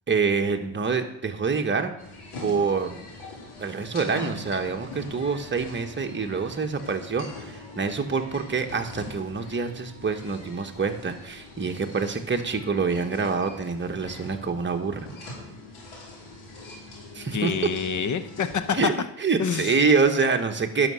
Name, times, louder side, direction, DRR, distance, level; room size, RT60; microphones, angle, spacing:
voice 1, 0.1-1.9 2.4-3.0 3.6-15.1 17.1-17.5 18.7-18.9 19.2-20.9, right 5 dB, 20° right, 4 dB, 1.3 m, -26 dB
sound 1, 2.0-18.8, left 2 dB, 75° left, 4.3 m, -42 dB
voice 2, 17.3-19.0 19.4-19.8, left 6 dB, 35° left, 11 dB, 0.9 m, -27 dB
11.0 x 5.9 x 6.5 m, 0.79 s
cardioid pair, 85°, 49 cm